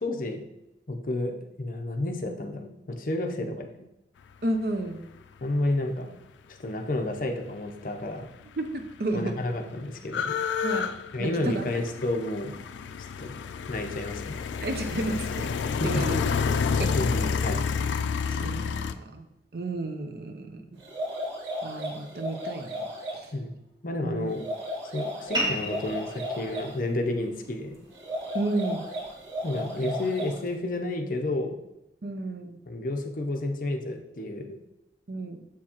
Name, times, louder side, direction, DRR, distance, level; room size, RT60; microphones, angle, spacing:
voice 1, 0.0-0.5 0.9-3.7 5.4-6.1 6.5-8.3 9.1-10.4 11.1-12.5 13.2-13.4 13.7-14.4 15.8-15.9 16.9-17.6 23.3-23.5 23.8-24.5 24.9-27.8 29.4-31.6 32.7-34.6, left 2 dB, 50° left, 4 dB, 0.6 m, -31 dB
voice 2, 4.4-5.1 8.6-9.4 10.6-10.9 11.2-11.7 14.6-15.5 15.8-16.2 16.8-17.0 18.3-19.2 19.5-20.6 21.6-22.9 23.1-23.3 24.0-24.3 28.3-28.9 32.0-32.6 35.1-35.4, right 2 dB, 55° right, 7 dB, 0.6 m, -32 dB
sound 1, 8.3-8.4 8.6-18.9, left 6 dB, 90° left, 0.3 m, -29 dB
sound 2, 20.8-23.2 24.3-26.7 27.9-30.5, equal, 90° right, 1.7 m, -35 dB
sound 3, 25.3-30.4, right 1 dB, 25° right, 1.7 m, -37 dB
7.3 x 4.6 x 2.9 m, 0.88 s
head